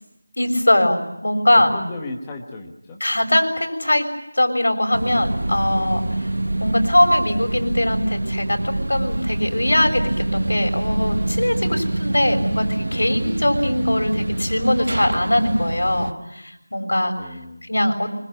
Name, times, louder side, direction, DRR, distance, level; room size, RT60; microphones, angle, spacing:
voice 1, 0.4-1.8 3.0-6.0 6.6-17.1 17.6-18.2, left 1 dB, 75° left, 5 dB, 6.7 m, -21 dB
voice 2, 1.5-3.0 5.7-6.0 17.2-17.7, left 2 dB, 5° left, 0 dB, 1.5 m, -35 dB
sound 1, 4.9-16.1, right 1 dB, 65° right, 1.0 m, -25 dB
26.0 x 25.5 x 7.8 m, 0.82 s
figure-of-eight pair, 180°, 0 cm